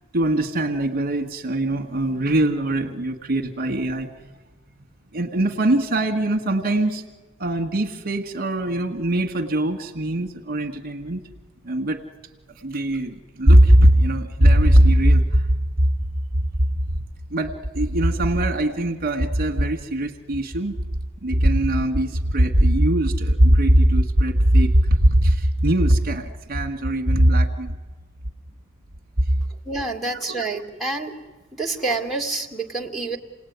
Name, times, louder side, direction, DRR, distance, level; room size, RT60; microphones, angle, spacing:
voice 1, 0.1-4.1 5.1-7.0 7.4-11.2 11.6-12.0 12.6-15.5 15.8-15.9 17.3-20.8 21.2-27.8 29.2-29.3, right 1 dB, 45° right, 3 dB, 1.7 m, -20 dB
voice 2, 29.7-31.1 31.5-33.2, right 3 dB, ahead, -2 dB, 2.0 m, -27 dB
28.0 x 19.0 x 9.5 m, 1.3 s
head